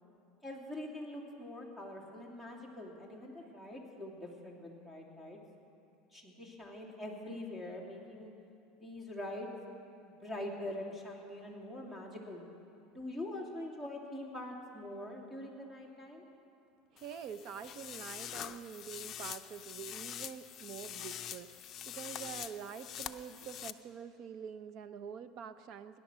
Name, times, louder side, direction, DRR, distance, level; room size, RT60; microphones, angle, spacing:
voice 1, 0.4-5.4 6.1-8.3 8.8-9.5 9.8-12.4 12.9-16.2, left 1 dB, 15° right, -1 dB, 2.9 m, -44 dB
voice 2, 16.9-26.0, right 7 dB, 50° right, 12 dB, 0.7 m, -46 dB
sound 1, 17.0-23.7, left 10 dB, 35° left, 0.6 m, -45 dB
18.0 x 11.0 x 6.2 m, 2.7 s
supercardioid pair, 130°, 0 cm